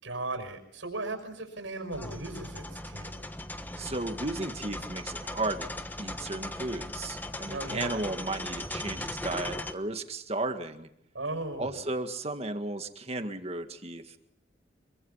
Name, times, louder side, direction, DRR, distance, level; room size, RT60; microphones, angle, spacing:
voice 1, 0.0-3.1 7.5-8.1 11.1-11.8, right 2 dB, 85° right, 7 dB, 5.9 m, -37 dB
sound 1, 1.9-9.7, left 1 dB, 10° left, 1.2 m, -38 dB
voice 2, 3.8-5.7 6.0-10.9 11.6-14.2, right 2 dB, 30° right, 7 dB, 1.9 m, -34 dB
26.0 x 23.5 x 5.7 m, 0.76 s
head